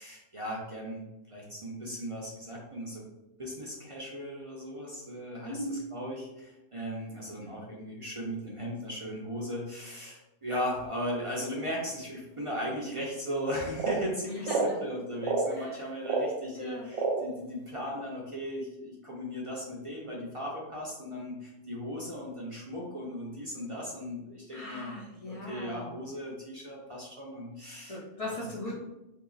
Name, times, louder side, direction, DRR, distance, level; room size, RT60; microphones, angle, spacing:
voice 1, 0.0-3.0 3.4-25.0 25.3-28.4, equal, 35° right, -3 dB, 0.5 m, -37 dB
voice 2, 5.4-5.9 12.8-13.0 14.3-14.8 15.5-15.9 16.5-16.9 24.5-25.9 27.9-28.7, left 1 dB, 40° left, -4 dB, 0.5 m, -39 dB
sound 1, 13.8-14.0 14.4-14.8 15.2-15.5 16.1-16.3 16.9-17.3, right 4 dB, 65° right, 0.8 m, -28 dB
2.8 x 2.8 x 3.9 m, 0.94 s
omnidirectional pair, 1.3 m